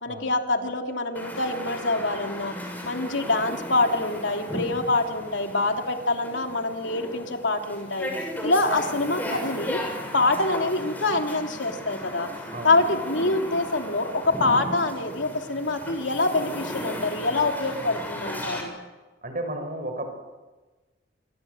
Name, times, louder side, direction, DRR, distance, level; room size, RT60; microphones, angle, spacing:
voice 1, 0.0-2.5 2.8-8.1 8.4-9.8 10.1-12.3 12.6-18.8, left 2 dB, 90° left, 3 dB, 3.0 m, -25 dB
sound 1, 1.2-18.6, equal, 10° left, 6.3 m, -36 dB
voice 2, 12.5-12.8 19.2-20.1, right 1 dB, 45° right, 6 dB, 5.0 m, -33 dB
27.0 x 23.5 x 7.9 m, 1.2 s
head